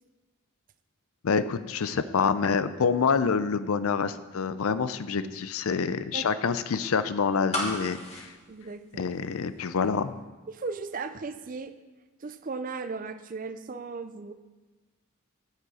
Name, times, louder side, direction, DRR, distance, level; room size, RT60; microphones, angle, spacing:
voice 1, 1.2-8.3 9.0-10.2, left 5 dB, 80° left, 13 dB, 0.5 m, -27 dB
voice 2, 5.9-6.3 8.5-9.1 10.5-11.7 12.2-14.3, right 4 dB, 40° right, 11 dB, 0.5 m, -37 dB
sound 1, 7.5-9.5 9.8-9.9, left 1 dB, 30° left, 1.6 m, -34 dB
9.4 x 7.8 x 4.9 m, 1.3 s
head